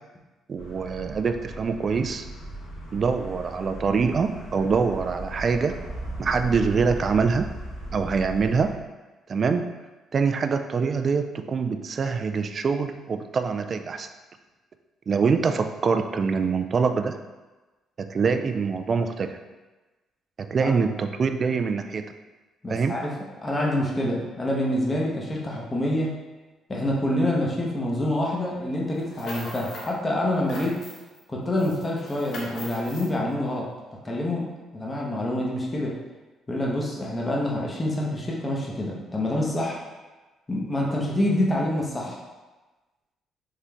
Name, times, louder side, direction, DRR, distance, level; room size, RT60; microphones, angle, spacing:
voice 1, 0.5-2.2 2.9-5.8 6.2-7.5 7.9-8.8 9.3-9.6 10.1-14.1 15.1-17.2 18.0-19.4 20.4-22.0 22.7-23.0, right 5 dB, 45° right, 8 dB, 0.3 m, -24 dB
sound 1, 0.6-8.7, right 1 dB, 85° left, 1.3 m, -37 dB
voice 2, 22.6-23.1 23.4-26.2 26.7-30.8 31.3-33.7 34.0-36.0 36.5-39.8 40.5-42.2, left 1 dB, 25° left, -3 dB, 0.9 m, -26 dB
sound 2, 28.9-30.0 30.3-31.2 31.6-33.1, left 2 dB, 65° left, 0.9 m, -40 dB
3.7 x 3.1 x 3.4 m, 1.2 s
supercardioid pair, 70°, 0 cm